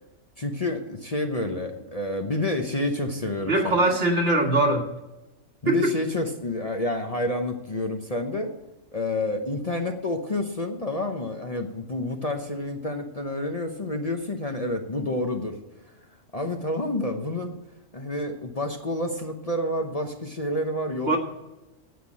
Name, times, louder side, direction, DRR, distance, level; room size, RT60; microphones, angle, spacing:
voice 1, 0.4-3.9 5.6-8.5 8.9-15.6 16.3-17.6 17.9-21.2, left 1 dB, 35° left, 4 dB, 0.9 m, -29 dB
voice 2, 3.5-4.9 5.7-5.9 21.1-21.2, right 2 dB, 60° right, 2 dB, 2.0 m, -21 dB
9.3 x 8.2 x 7.3 m, 1.0 s
omnidirectional pair, 1.3 m